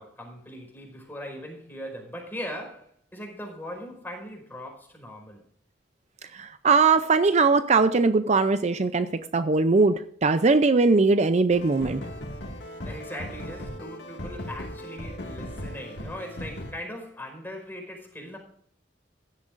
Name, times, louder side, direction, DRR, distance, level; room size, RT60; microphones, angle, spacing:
voice 1, 0.0-5.4 12.8-18.4, equal, 10° left, 4.7 m, -39 dB
voice 2, 6.3-12.0, right 4 dB, 40° right, 0.5 m, -21 dB
sound 1, 11.5-16.7, equal, 85° left, 2.0 m, -38 dB
16.0 x 12.5 x 2.6 m
head